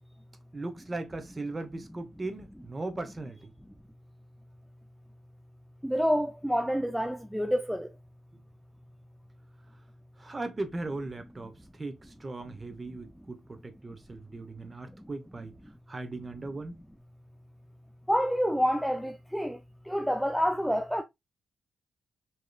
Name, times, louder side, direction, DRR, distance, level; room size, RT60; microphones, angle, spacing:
voice 1, 0.5-3.5 8.3-8.4 10.2-15.6 15.9-16.8, right 2 dB, 25° right, 0.8 m, -38 dB
voice 2, 5.8-7.9 18.1-19.6 19.9-21.0, equal, ahead, 0.3 m, -28 dB
5.0 x 3.0 x 2.3 m
cardioid pair, 120°, 0 cm